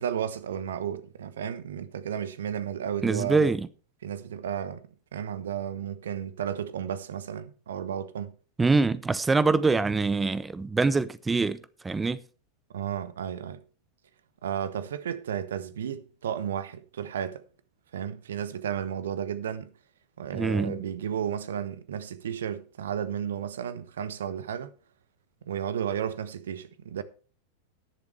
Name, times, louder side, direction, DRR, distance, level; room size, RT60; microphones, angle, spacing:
voice 1, 0.0-3.5 4.0-4.8 5.1-8.3 12.7-13.6 14.4-17.4 17.9-19.7 20.2-24.7 25.4-27.0, right 9 dB, 65° right, 1.0 m, -33 dB
voice 2, 3.0-3.7 8.6-11.6 11.8-12.2 20.3-20.8, right 3 dB, 10° right, 0.6 m, -24 dB
19.0 x 7.1 x 3.3 m
figure-of-eight pair, 90°, 0 cm